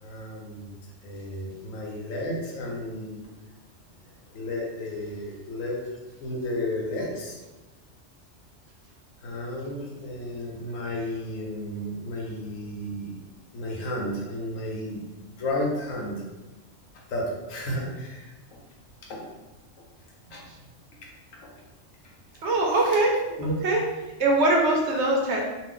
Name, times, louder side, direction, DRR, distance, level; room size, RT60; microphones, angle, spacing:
voice 1, 0.0-0.8 1.0-3.2 4.3-5.8 6.2-7.4 9.2-13.1 13.5-15.0 15.4-16.2 17.1-18.3 19.1-19.2 20.3-20.4 22.8-23.0 23.4-23.5, left 1 dB, 85° left, -2 dB, 1.2 m, -32 dB
voice 2, 22.4-23.1 23.6-23.8 24.2-25.4, right 2 dB, 65° right, 0 dB, 0.8 m, -22 dB
2.5 x 2.5 x 3.7 m, 1.1 s
omnidirectional pair, 1.3 m